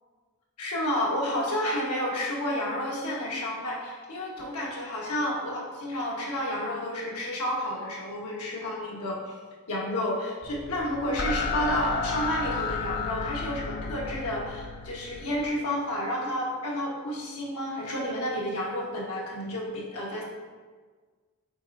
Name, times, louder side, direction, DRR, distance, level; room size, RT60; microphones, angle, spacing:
voice 1, 0.6-9.4 9.7-20.2, left 1 dB, 85° left, -4 dB, 1.5 m, -31 dB
sound 1, 10.4-15.5, left 4 dB, 45° left, 0.5 m, -32 dB
7.9 x 4.3 x 2.7 m, 1.5 s
head